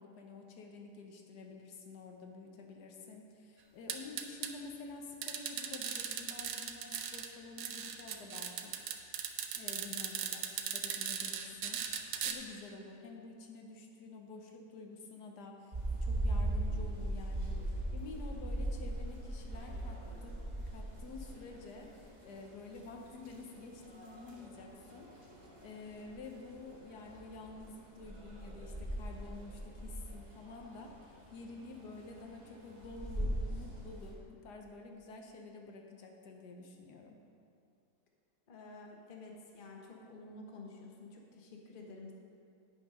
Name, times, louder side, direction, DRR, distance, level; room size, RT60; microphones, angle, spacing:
voice 1, 0.0-8.7 9.5-17.6 17.9-20.3 20.7-25.2 25.6-37.2, left 3 dB, 75° left, 2 dB, 1.4 m, -49 dB
sound 1, 3.9-4.5 5.2-7.3 7.6-12.3, right 8 dB, 65° right, 1.0 m, -38 dB
sound 2, 15.7-34.1, right 1 dB, 25° right, 1.4 m, -40 dB
voice 2, 38.5-42.1, left 3 dB, 35° left, 0 dB, 1.1 m, -50 dB
9.6 x 5.9 x 5.4 m, 2.5 s
omnidirectional pair, 1.8 m